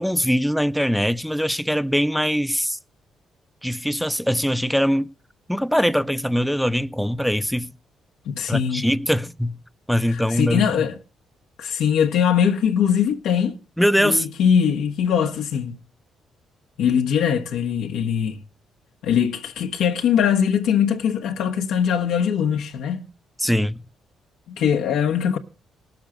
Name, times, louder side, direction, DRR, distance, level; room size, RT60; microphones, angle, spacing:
voice 1, 0.0-2.8 3.6-5.1 5.5-7.7 8.5-9.6 9.9-10.9 13.8-14.3 23.4-23.8, equal, ahead, 0.6 m, -22 dB
voice 2, 8.3-8.9 10.1-11.0 11.6-13.6 14.0-15.8 16.8-18.4 19.0-23.1 24.5-25.4, left 8 dB, 85° left, 1.2 m, -21 dB
18.0 x 7.1 x 4.9 m
cardioid pair, 90°, 0 cm